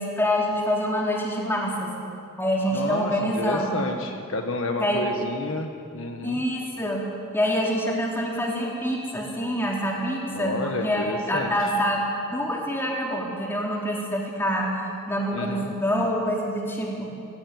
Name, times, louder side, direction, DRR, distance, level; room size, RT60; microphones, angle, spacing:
voice 1, 0.0-1.9 2.4-3.8 4.8-5.0 6.2-7.1 7.3-12.0 12.3-14.7 15.1-17.1, equal, 10° left, -3 dB, 3.9 m, -26 dB
voice 2, 2.7-6.4 10.3-11.5 15.3-15.7, left 2 dB, 65° left, 4 dB, 1.4 m, -30 dB
18.5 x 16.5 x 9.6 m, 2.6 s
head